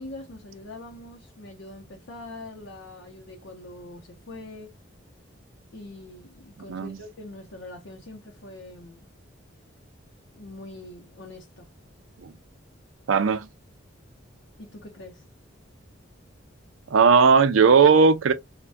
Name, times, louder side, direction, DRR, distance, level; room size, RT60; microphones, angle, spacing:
voice 1, 0.0-4.8 5.7-9.1 10.3-11.7 14.6-15.2, left 2 dB, 70° left, 0.6 m, -43 dB
voice 2, 13.1-13.5 16.9-18.3, right 5 dB, 80° right, 0.5 m, -17 dB
3.4 x 2.2 x 2.5 m
head